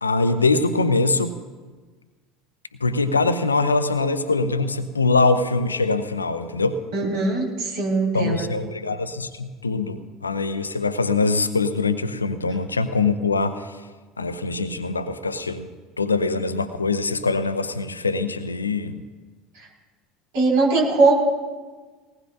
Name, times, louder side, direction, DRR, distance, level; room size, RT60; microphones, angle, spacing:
voice 1, 0.0-1.4 2.8-6.8 8.1-13.8 14.2-15.7 16.0-19.0, left 3 dB, 80° left, 11 dB, 0.7 m, -23 dB
voice 2, 6.9-8.5 19.5-19.7 20.3-21.1, right 3 dB, 60° right, -2 dB, 5.1 m, -20 dB
20.0 x 18.5 x 2.6 m, 1.4 s
figure-of-eight pair, 70°, 0 cm